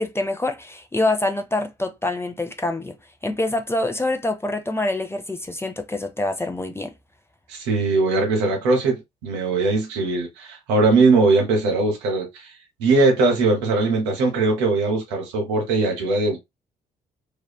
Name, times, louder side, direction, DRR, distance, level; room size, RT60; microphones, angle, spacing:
voice 1, 0.0-3.0 3.2-6.9, left 2 dB, 10° left, 0.5 m, -25 dB
voice 2, 7.5-12.5 12.8-16.4, right 3 dB, 75° right, 0.9 m, -20 dB
2.6 x 2.3 x 2.2 m
figure-of-eight pair, 40°, 21 cm